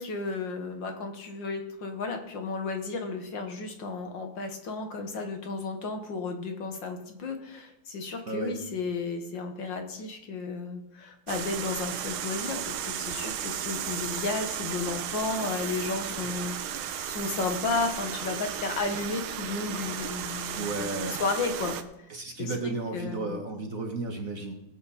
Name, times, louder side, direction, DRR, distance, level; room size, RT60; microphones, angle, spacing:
voice 1, 0.0-22.1 22.4-22.6 22.9-23.4, left 3 dB, 65° left, 4 dB, 2.0 m, -33 dB
voice 2, 8.3-8.6 20.6-21.2 22.1-24.5, right 2 dB, 45° right, 3 dB, 1.5 m, -33 dB
sound 1, 11.3-21.8, right 9 dB, 80° right, 1.6 m, -34 dB
18.0 x 8.2 x 4.2 m, 0.86 s
omnidirectional pair, 2.3 m